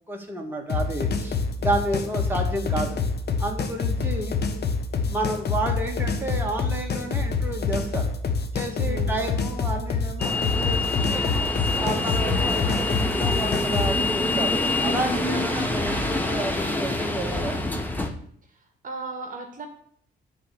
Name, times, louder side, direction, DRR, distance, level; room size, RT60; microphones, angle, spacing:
voice 1, 0.1-3.0 3.4-4.4 5.0-8.1 8.5-11.4 11.8-17.6, right 1 dB, 10° right, 0 dB, 2.0 m, -31 dB
sound 1, 0.7-13.9, left 4 dB, 55° left, 1.2 m, -26 dB
voice 2, 8.8-9.3 18.8-19.7, right 3 dB, 40° right, 3 dB, 1.6 m, -36 dB
sound 2, 10.2-18.1, left 2 dB, 10° left, 1.3 m, -26 dB
9.6 x 4.0 x 7.1 m, 0.63 s
cardioid pair, 90°, 20 cm